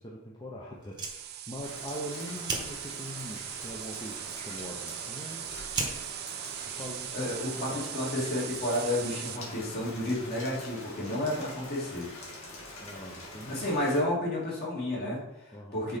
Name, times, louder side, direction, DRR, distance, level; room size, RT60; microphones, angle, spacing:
voice 1, 0.0-5.4 6.6-7.9 12.8-13.7 15.5-15.9, equal, 20° left, -3 dB, 0.7 m, -42 dB
Fire, 0.7-7.7, right 3 dB, 20° right, 1.0 m, -41 dB
sound 1, 1.0-9.4, right 13 dB, 45° right, 0.3 m, -40 dB
Rain, 1.6-14.0, left 1 dB, 70° left, 1.9 m, -45 dB
voice 2, 7.1-12.1 13.5-16.0, left 1 dB, 45° left, -5 dB, 2.4 m, -31 dB
6.1 x 4.2 x 5.0 m, 0.90 s
head